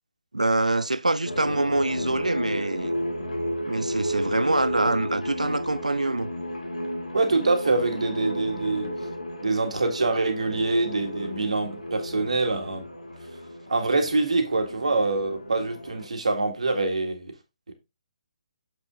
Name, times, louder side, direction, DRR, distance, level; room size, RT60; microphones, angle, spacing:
voice 1, 0.3-2.9 3.7-6.3, right 2 dB, 85° right, 0.5 m, -25 dB
sound 1, 1.2-16.1, equal, 85° left, 1.7 m, -33 dB
voice 2, 7.1-8.9 9.4-12.8 13.7-17.3 17.7-17.8, right 3 dB, 70° right, 1.9 m, -25 dB
7.5 x 5.5 x 3.7 m
figure-of-eight pair, 140°, 4 cm